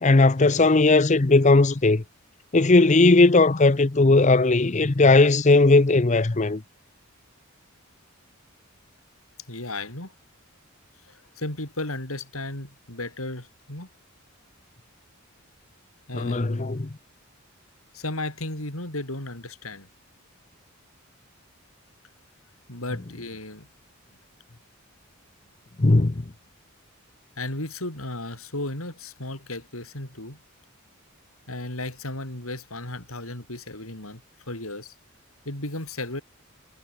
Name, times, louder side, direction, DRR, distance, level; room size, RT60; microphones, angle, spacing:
voice 1, 0.0-2.0 2.5-6.6 16.1-16.9 25.8-26.2, left 3 dB, 35° left, 0.7 m, -18 dB
voice 2, 9.5-10.1 11.0-13.9 16.1-16.8 17.9-19.9 22.7-23.7 27.4-30.4 31.5-34.2 34.5-34.9 35.5-36.2, left 2 dB, 80° left, 7.1 m, -34 dB
head